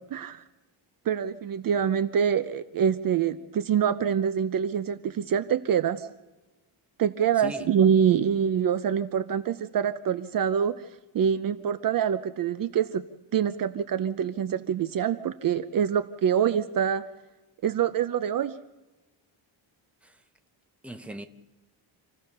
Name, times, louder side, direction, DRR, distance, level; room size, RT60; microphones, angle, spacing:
voice 1, 0.1-0.4 1.1-6.1 7.0-10.8 11.1-13.0 13.3-17.1 17.6-18.6, right 8 dB, 45° right, 0.7 m, -25 dB
voice 2, 7.4-7.7 20.0-20.2 20.8-21.3, equal, 5° right, 0.8 m, -39 dB
27.0 x 16.0 x 6.8 m
cardioid pair, 170°, 50 cm